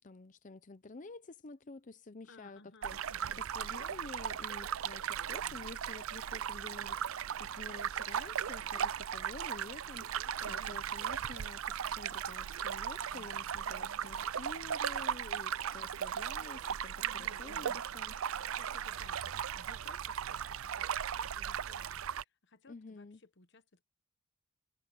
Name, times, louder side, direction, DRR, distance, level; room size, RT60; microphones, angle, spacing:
voice 1, 0.0-18.1 22.7-23.2, left 3 dB, 35° left, 0.6 m, -50 dB
voice 2, 2.2-3.4 10.4-10.8 13.1-14.3 17.0-17.8 18.5-20.9 21.3-23.8, left 2 dB, 55° left, 1.2 m, -59 dB
sound 1, 2.8-22.2, right 9 dB, 80° right, 0.5 m, -37 dB
head